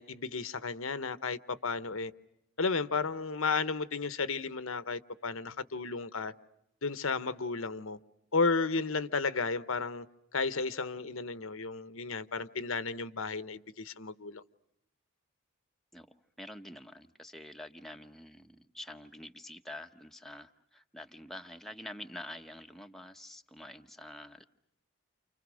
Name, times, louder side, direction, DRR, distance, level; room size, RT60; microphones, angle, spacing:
voice 1, 0.0-2.1 2.6-6.3 6.8-8.0 8.3-10.1 10.3-14.4, left 4 dB, 70° left, 1.1 m, -33 dB
voice 2, 15.9-24.4, left 1 dB, ahead, 1.0 m, -47 dB
30.0 x 29.0 x 6.3 m
head